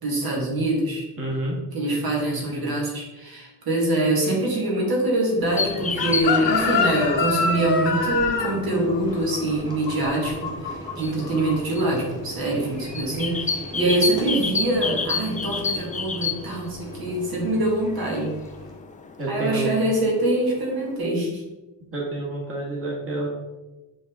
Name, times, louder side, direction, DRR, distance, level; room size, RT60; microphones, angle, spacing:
voice 1, 0.0-1.1 1.7-18.3 19.3-21.4, right 1 dB, 60° right, -3 dB, 1.9 m, -24 dB
voice 2, 1.2-1.6 19.2-19.7 21.9-23.3, right 2 dB, 30° right, -4 dB, 1.8 m, -28 dB
Boiling, 5.3-18.8, right 1 dB, 10° right, 1.4 m, -40 dB
sound 1, 5.6-20.9, left 4 dB, 20° left, 0.4 m, -32 dB
Chicken rooster, 6.0-10.9 11.2-11.6, left 5 dB, 80° left, 1.4 m, -25 dB
9.0 x 3.6 x 3.6 m, 1.1 s
cardioid pair, 140°, 42 cm